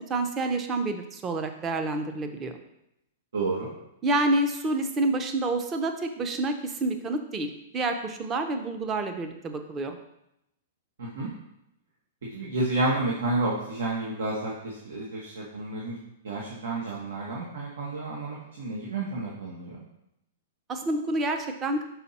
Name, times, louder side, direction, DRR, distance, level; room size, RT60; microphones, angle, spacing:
voice 1, 0.0-2.6 4.0-10.0 20.7-21.8, right 2 dB, 20° right, 6 dB, 0.6 m, -28 dB
voice 2, 3.3-3.7 11.0-11.3 12.3-16.0 16.2-19.8, right 2 dB, 85° right, -4 dB, 1.4 m, -30 dB
5.6 x 4.5 x 4.2 m, 0.83 s
hypercardioid pair, 160°, 0 cm